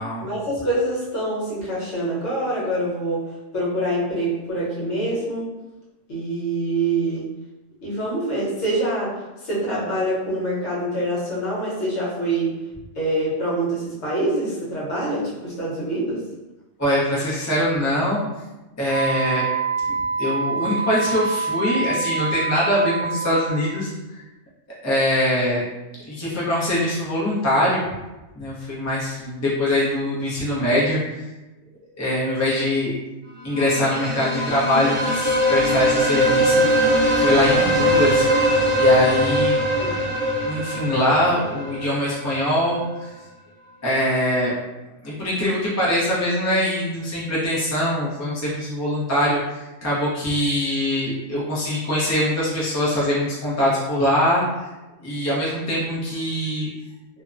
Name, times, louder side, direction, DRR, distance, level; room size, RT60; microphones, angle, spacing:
voice 1, 0.2-3.2 3.5-5.4 6.1-7.3 7.8-9.1 9.4-12.6 12.9-16.2 39.7-39.9, right 1 dB, 60° left, -8 dB, 1.2 m, -25 dB
voice 2, 16.8-18.2 18.8-19.4 19.9-24.2 24.8-25.6 26.0-27.8 28.4-31.2 32.0-32.9 33.4-36.9 37.2-38.3 38.8-39.6 40.4-42.8 43.8-44.5 45.0-54.4 55.0-56.7, left 1 dB, 20° left, -8 dB, 0.5 m, -23 dB
Wind instrument woodwind instrument, 18.9-23.7, right 5 dB, 85° left, 1.1 m, -26 dB
sound 1, 33.5-42.3, equal, 60° right, 0.8 m, -21 dB
2.8 x 2.1 x 2.4 m, 1.1 s
omnidirectional pair, 1.4 m